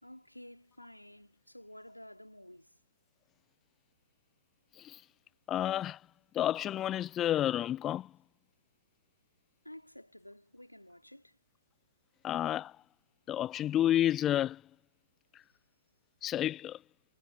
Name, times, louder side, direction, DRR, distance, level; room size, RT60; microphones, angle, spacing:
voice 1, 0.0-2.8 9.6-11.4, left 1 dB, 90° left, 4.3 m, -52 dB
voice 2, 5.5-6.0 6.3-8.1 12.2-12.7 13.3-14.6 16.2-16.8, left 12 dB, 20° left, 0.7 m, -30 dB
figure-of-eight pair, 115°, 0 cm